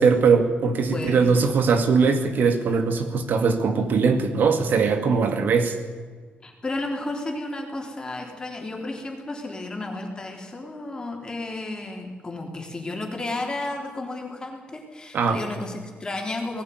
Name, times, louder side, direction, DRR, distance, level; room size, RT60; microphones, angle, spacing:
voice 1, 0.0-5.8 15.1-15.4, right 5 dB, 65° right, 7 dB, 2.0 m, -20 dB
voice 2, 0.9-1.4 6.4-16.6, left 2 dB, 25° left, 2 dB, 3.7 m, -32 dB
19.0 x 15.5 x 9.5 m, 1.5 s
wide cardioid pair, 155°, 4 cm